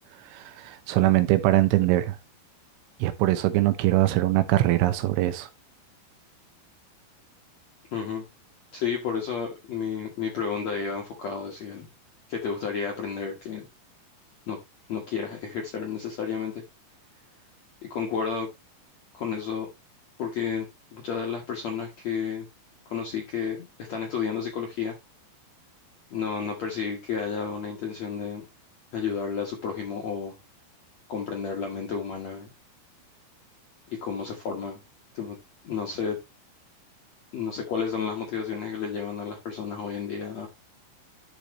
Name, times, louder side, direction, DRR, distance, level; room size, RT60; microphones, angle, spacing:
voice 1, 0.3-2.2 3.0-5.5, right 16 dB, 90° right, 3.4 m, -22 dB
voice 2, 7.9-8.2 8.7-11.9 12.3-13.7 14.5-14.6 14.9-16.6 17.8-18.5 19.1-19.7 20.2-20.7 20.9-22.5 22.8-24.9 26.1-28.4 28.9-30.4 31.1-32.5 33.9-34.8 35.1-35.4 35.6-36.2 37.3-40.5, left 6 dB, 70° left, 1.6 m, -31 dB
11.5 x 5.2 x 3.1 m
omnidirectional pair, 5.4 m